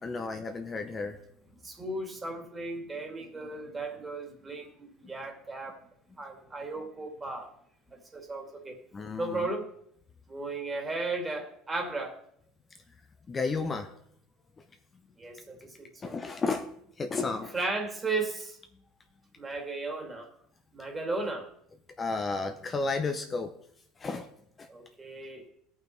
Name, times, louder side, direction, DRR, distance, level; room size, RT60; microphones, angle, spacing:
voice 1, 0.0-1.2 8.9-9.5 13.3-13.9 16.0-16.7 17.0-17.6 22.0-23.5 24.0-24.3, left 3 dB, 25° left, 5 dB, 0.9 m, -32 dB
voice 2, 1.6-5.8 6.2-7.5 7.9-8.8 9.2-9.7 10.3-12.2 15.2-16.2 17.5-18.6 19.4-20.3 20.7-21.5 24.7-25.5, right 3 dB, 20° right, 3 dB, 2.4 m, -35 dB
16.0 x 5.6 x 4.6 m, 0.70 s
supercardioid pair, 105°, 0 cm